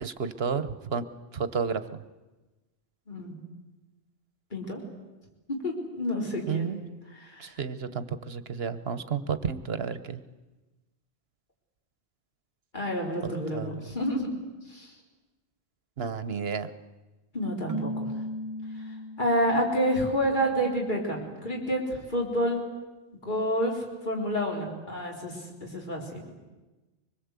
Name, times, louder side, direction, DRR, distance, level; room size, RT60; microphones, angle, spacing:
voice 1, 0.0-1.0 1.3-2.0 6.5-6.8 7.4-10.2 13.2-13.8 16.0-16.7, right 6 dB, 65° right, 13 dB, 1.2 m, -31 dB
voice 2, 5.6-6.8 7.1-7.5 12.7-14.3 14.7-14.9 17.3-18.1 18.9-22.6 23.2-26.4, equal, 45° left, 0 dB, 4.1 m, -29 dB
Keyboard (musical), 17.7-19.7, equal, 20° right, 0.7 m, -35 dB
24.5 x 21.0 x 8.2 m, 1.2 s
omnidirectional pair, 1.1 m